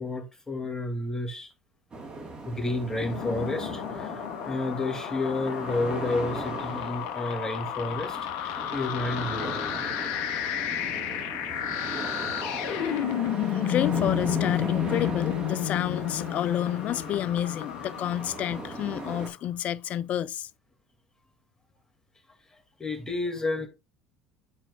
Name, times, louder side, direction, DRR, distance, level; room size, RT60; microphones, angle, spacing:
voice 1, 0.0-1.5 2.5-9.9 22.8-23.7, left 2 dB, 20° left, 2.3 m, -31 dB
sound 1, 1.9-19.3, right 2 dB, 30° right, 3.0 m, -38 dB
sound 2, 2.8-19.2, left 11 dB, 65° left, 0.8 m, -32 dB
voice 2, 13.3-20.5, left 11 dB, 50° left, 0.3 m, -30 dB
12.0 x 4.4 x 2.4 m
hypercardioid pair, 75°, 3 cm